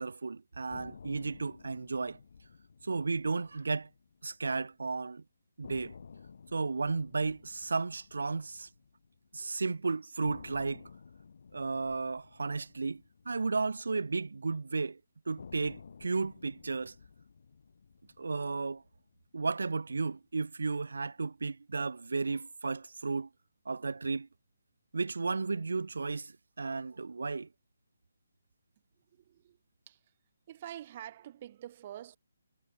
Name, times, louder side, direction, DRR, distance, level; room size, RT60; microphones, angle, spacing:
voice 1, 0.0-2.2 2.8-3.9 4.2-5.2 5.6-5.9 6.5-8.7 9.3-10.9 11.5-15.0 15.3-16.9 18.2-18.8 19.3-23.3 23.7-24.3 24.9-27.5, right 4 dB, 75° right, 0.6 m, -34 dB
sound 1, 0.7-4.8 5.1-5.2 5.6-9.7 10.3-14.6 15.4-19.7, left 5 dB, 60° left, 2.0 m, -54 dB
voice 2, 29.1-29.6 29.9-30.0 30.5-32.2, right 11 dB, 35° right, 1.9 m, -46 dB
figure-of-eight pair, 150°, 0 cm